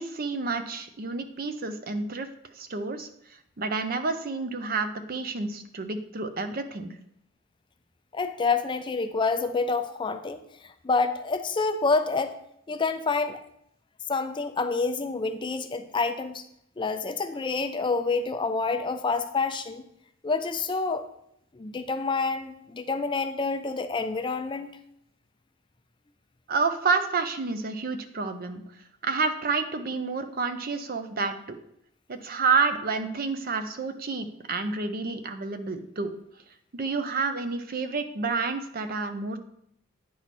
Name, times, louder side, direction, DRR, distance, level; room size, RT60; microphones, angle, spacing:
voice 1, 0.0-2.3 2.5-6.9 26.5-28.6 29.0-31.6 32.1-36.1 36.7-39.4, right 4 dB, 45° right, 9 dB, 0.6 m, -29 dB
voice 2, 8.1-12.3 12.7-13.4 14.1-16.5 16.8-19.8 20.2-21.1 21.5-24.7, left 4 dB, 25° left, 9 dB, 0.4 m, -28 dB
9.4 x 4.6 x 4.2 m, 0.75 s
head